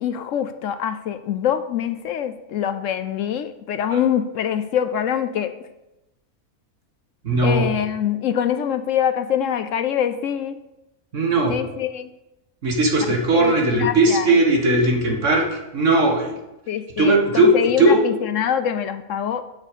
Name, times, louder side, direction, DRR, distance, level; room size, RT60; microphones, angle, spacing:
voice 1, 0.0-5.5 7.4-10.6 11.5-12.1 13.3-14.3 16.7-17.2 17.5-19.4, left 9 dB, 70° left, 10 dB, 0.9 m, -24 dB
voice 2, 7.2-7.7 11.1-11.5 12.6-16.3 17.0-18.0, right 2 dB, 60° right, 1 dB, 1.9 m, -18 dB
8.2 x 6.4 x 6.7 m, 0.94 s
omnidirectional pair, 1.5 m